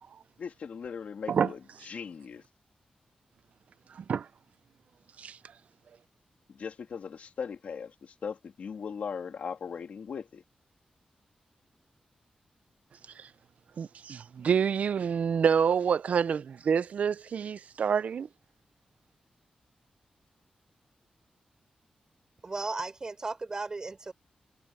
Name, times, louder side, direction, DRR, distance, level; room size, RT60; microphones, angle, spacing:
voice 1, 0.4-2.4 6.5-10.4, left 6 dB, 70° left, 2.9 m, -39 dB
voice 2, 3.9-4.3 5.2-5.4 13.2-13.3 13.8-18.3, right 7 dB, 65° right, 0.4 m, -27 dB
voice 3, 22.4-24.1, right 3 dB, 30° right, 4.0 m, -35 dB
wide cardioid pair, 175°, 3 cm